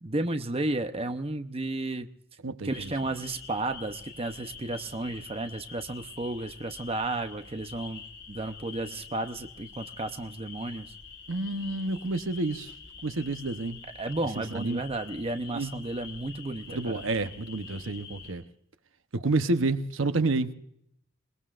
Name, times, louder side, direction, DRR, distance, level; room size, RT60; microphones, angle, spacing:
voice 1, 0.0-2.1 2.6-10.9 14.0-16.7, right 2 dB, 30° right, 0.8 m, -33 dB
voice 2, 2.4-2.9 11.3-12.7 13.0-13.8 14.3-14.8 15.5-15.7 16.7-18.4 19.1-20.5, right 2 dB, 85° right, 0.9 m, -29 dB
sound 1, 2.7-18.3, left 5 dB, 65° left, 4.3 m, -46 dB
27.0 x 19.5 x 2.5 m
head